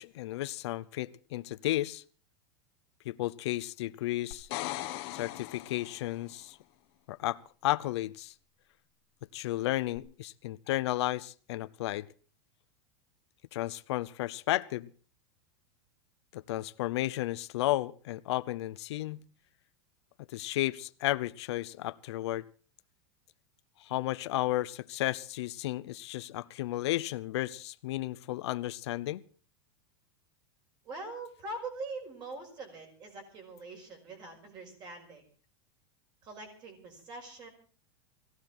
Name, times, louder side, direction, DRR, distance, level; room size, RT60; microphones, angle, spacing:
voice 1, 0.0-2.0 3.0-4.5 5.1-6.6 7.1-8.3 9.3-12.1 13.5-14.9 16.3-19.2 20.3-22.4 23.8-29.2, left 16 dB, 70° left, 15 dB, 0.7 m, -33 dB
sound 1, 4.3-6.2 9.9-10.0, left 16 dB, 45° left, 1.6 m, -39 dB
voice 2, 30.8-35.2 36.2-37.5, right 2 dB, 30° right, 4 dB, 5.5 m, -43 dB
20.0 x 16.0 x 4.4 m, 0.40 s
supercardioid pair, 165°, 15 cm